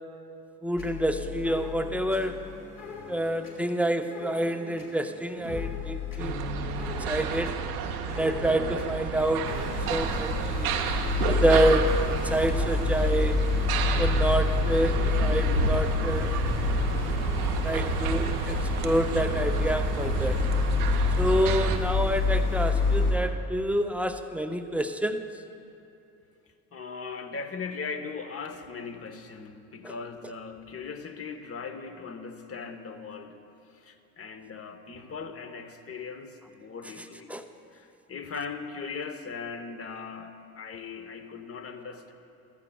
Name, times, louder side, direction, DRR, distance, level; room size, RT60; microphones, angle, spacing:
voice 1, 0.6-2.4 3.1-6.5 6.8-7.6 8.1-10.7 11.2-13.4 14.0-16.4 17.6-18.6 18.8-20.4 21.2-25.2 29.8-29.9 37.3-37.4, right 1 dB, 5° right, 7 dB, 0.5 m, -27 dB
sound 1, 0.8-10.5, left 7 dB, 45° left, 2.5 m, -40 dB
sound 2, 6.2-21.8, right 6 dB, 85° right, 0.7 m, -31 dB
sound 3, 9.4-23.1, left 3 dB, 90° left, 2.0 m, -27 dB
voice 2, 26.7-33.4 33.7-37.3 37.7-42.1, left 5 dB, 30° left, 7 dB, 1.0 m, -39 dB
14.5 x 13.0 x 2.3 m, 2.7 s
hypercardioid pair, 65°, 43 cm